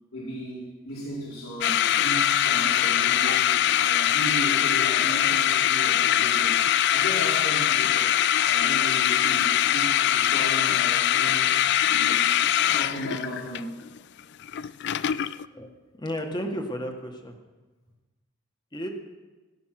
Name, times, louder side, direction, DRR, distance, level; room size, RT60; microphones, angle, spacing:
voice 1, 0.1-6.6 6.9-8.1 8.4-11.5 11.9-12.3 12.5-13.8, equal, 70° left, -6 dB, 4.7 m, -35 dB
sound 1, 1.6-15.5, left 11 dB, 55° left, 0.4 m, -22 dB
voice 2, 16.0-17.3 18.7-18.9, equal, 20° left, 4 dB, 1.7 m, -32 dB
17.5 x 11.5 x 6.0 m, 1.2 s
head